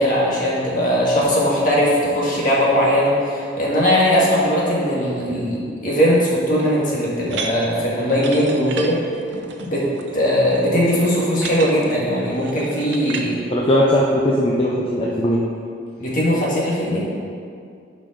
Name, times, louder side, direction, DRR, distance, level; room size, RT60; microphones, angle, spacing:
voice 1, 0.0-9.0 9.6-9.9 10.1-13.4 16.0-17.1, equal, 45° left, -6 dB, 1.9 m, -19 dB
sound 1, 7.3-13.3, right 4 dB, 70° right, 0.7 m, -34 dB
voice 2, 13.5-15.4, equal, 30° left, -4 dB, 0.7 m, -18 dB
10.5 x 5.2 x 3.9 m, 2.3 s
head